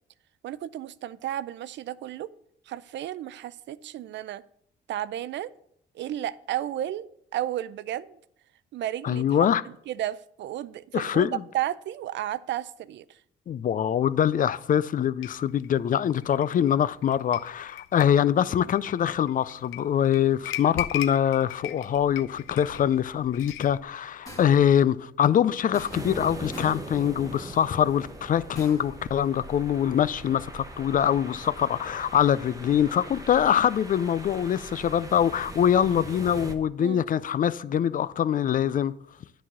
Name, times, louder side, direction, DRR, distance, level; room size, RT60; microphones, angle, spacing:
voice 1, 0.4-2.3 2.7-4.4 4.9-5.5 5.9-7.1 7.3-8.2 8.7-9.2 9.6-13.2 36.8-37.0, right 12 dB, 65° right, 0.4 m, -33 dB
voice 2, 9.0-9.6 10.9-11.4 13.5-38.9, left 9 dB, 45° left, 0.4 m, -24 dB
sound 1, 15.2-23.8, left 12 dB, 85° left, 0.6 m, -39 dB
sound 2, 24.3-24.7 25.7-26.3 26.5-26.9 28.5-29.0, left 1 dB, 15° left, 1.9 m, -44 dB
sound 3, 25.9-36.5, right 2 dB, 15° right, 1.0 m, -41 dB
10.0 x 4.1 x 6.0 m
cardioid pair, 90°, 20 cm